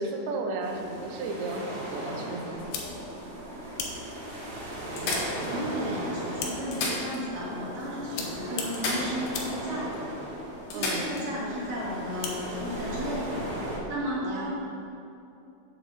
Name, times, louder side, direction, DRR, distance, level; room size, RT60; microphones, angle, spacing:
voice 1, 0.0-2.7 10.7-11.1 14.2-14.5, right 2 dB, 80° right, 3 dB, 2.6 m, -34 dB
sound 1, 0.6-13.8, right 1 dB, 45° right, 2.0 m, -38 dB
sound 2, 1.5-3.1 3.8-3.9 4.1-4.2 5.0-6.0 6.6-7.6 7.8-7.9 8.7-9.6 9.9-10.0 10.7-11.3 13.3-13.4, left 2 dB, 70° left, 2.6 m, -34 dB
sound 3, 2.6-14.0, left 4 dB, 85° left, 2.9 m, -42 dB
voice 2, 5.5-10.1 10.7-13.2 13.9-14.5, equal, 60° right, -7 dB, 2.8 m, -34 dB
7.8 x 6.9 x 3.7 m, 2.8 s
omnidirectional pair, 4.5 m